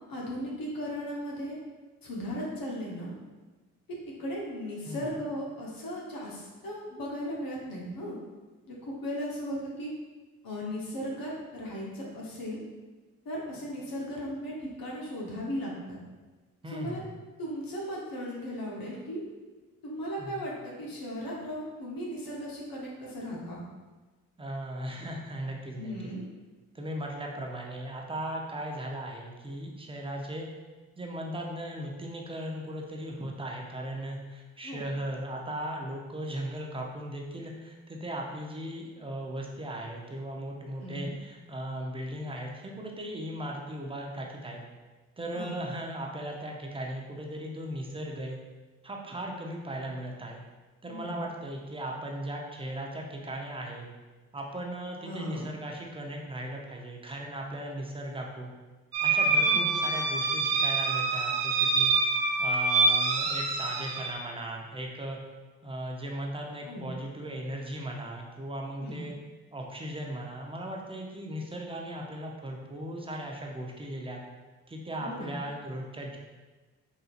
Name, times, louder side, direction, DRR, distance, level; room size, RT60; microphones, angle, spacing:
voice 1, 0.0-1.6 2.0-3.1 3.9-8.2 8.7-9.9 10.4-12.6 13.2-16.0 16.7-17.0 17.4-19.2 19.8-23.6 25.8-26.2 34.6-34.9 40.8-41.1 45.3-45.6 50.9-51.2 55.0-55.5 59.5-59.7 66.6-66.9 68.8-69.0 75.0-75.3, equal, 60° left, -4 dB, 1.1 m, -37 dB
voice 2, 16.6-17.1 20.2-20.4 24.4-25.9 26.7-30.5 31.0-44.6 45.2-48.4 48.8-50.4 50.8-53.9 54.3-58.5 59.0-65.2 65.6-69.1 69.5-74.2 74.7-76.2, right 1 dB, 15° right, 0 dB, 0.7 m, -37 dB
sound 1, 58.9-64.1, right 3 dB, 80° right, 0.5 m, -26 dB
4.0 x 2.6 x 2.5 m, 1.3 s
hypercardioid pair, 40°, 39 cm